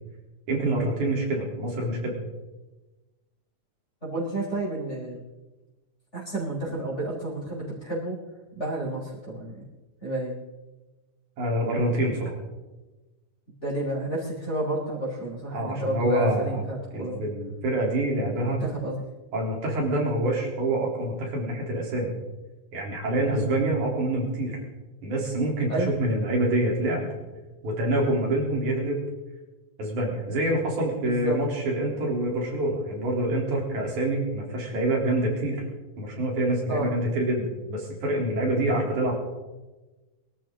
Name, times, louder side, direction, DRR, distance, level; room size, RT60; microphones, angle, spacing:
voice 1, 0.5-2.1 11.4-12.3 15.5-16.6 16.9-18.6 19.3-22.1 22.7-24.6 25.0-27.1 27.6-29.0 29.8-35.6 36.0-39.1, right 1 dB, 85° right, -2 dB, 5.0 m, -26 dB
voice 2, 4.0-5.2 6.1-8.2 8.5-9.6 10.0-10.3 13.6-17.2 18.3-19.0 23.3-23.5 25.7-25.9 31.0-31.4 36.7-36.9 38.5-38.7, right 1 dB, 20° left, -8 dB, 4.8 m, -31 dB
22.5 x 13.0 x 3.8 m, 1.1 s
omnidirectional pair, 3.3 m